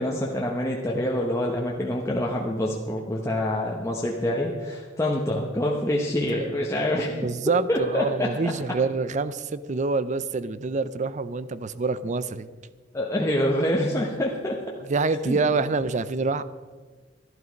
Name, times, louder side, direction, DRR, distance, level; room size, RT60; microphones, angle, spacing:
voice 1, 0.0-7.1 7.7-8.5 12.9-14.7 15.3-15.4, left 1 dB, 15° left, -2 dB, 1.0 m, -26 dB
voice 2, 6.9-12.5 14.8-16.4, right 4 dB, 40° right, 15 dB, 0.5 m, -26 dB
12.5 x 11.0 x 5.2 m, 1.4 s
head